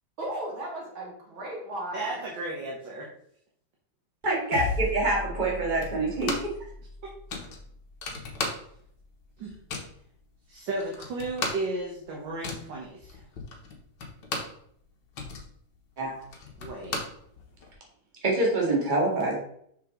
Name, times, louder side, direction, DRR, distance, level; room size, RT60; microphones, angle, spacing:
voice 1, 0.2-2.3, right 1 dB, 85° right, -2 dB, 3.1 m, -36 dB
voice 2, 1.9-3.1 7.0-7.1 9.4-9.6 10.5-13.2 16.6-17.0, right 2 dB, 65° right, -2 dB, 2.0 m, -34 dB
voice 3, 4.2-6.5 16.0-16.2 18.2-19.4, right 2 dB, 25° right, -2 dB, 2.1 m, -26 dB
sound 1, 4.5-9.1, left 3 dB, 45° left, 1.9 m, -37 dB
sound 2, 5.8-6.6 6.9-7.0 7.3-9.0 9.3-10.0 10.5-10.6 10.8-14.6 15.0-17.7, left 3 dB, 60° left, 1.9 m, -36 dB
6.8 x 6.4 x 3.8 m, 0.67 s
omnidirectional pair, 2.2 m